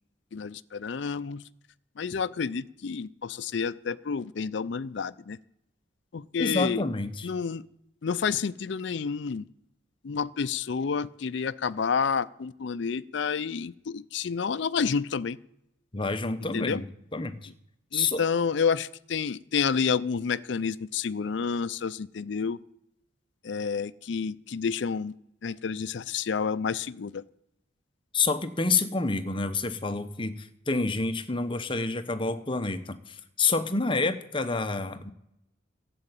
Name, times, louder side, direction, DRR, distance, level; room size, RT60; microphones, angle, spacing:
voice 1, 0.3-1.4 2.0-5.4 6.1-6.8 7.2-7.6 8.0-9.5 10.0-15.4 16.5-16.8 17.9-22.6 23.4-25.1 25.4-27.2, left 6 dB, 60° left, 15 dB, 0.4 m, -29 dB
voice 2, 6.4-7.3 15.9-16.8 17.1-17.5 17.9-18.2 28.1-35.1, left 3 dB, 25° left, 10 dB, 0.8 m, -28 dB
12.0 x 7.8 x 8.9 m, 0.80 s
head